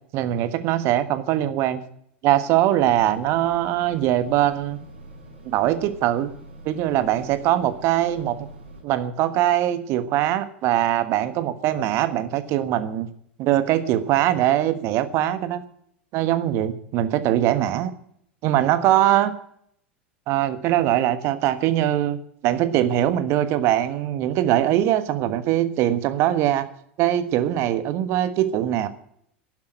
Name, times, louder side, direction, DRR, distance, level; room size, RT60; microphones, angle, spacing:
voice 1, 0.1-1.8 2.2-4.8 5.4-6.3 6.6-8.4 8.8-13.1 13.4-15.6 16.1-17.9 18.4-19.3 20.3-26.7 27.0-28.9, right 12 dB, 45° right, 13 dB, 1.4 m, -22 dB
sound 1, 2.8-8.8, right 1 dB, 70° right, 6.6 m, -45 dB
11.5 x 11.0 x 9.0 m, 0.69 s
figure-of-eight pair, 80°, 6 cm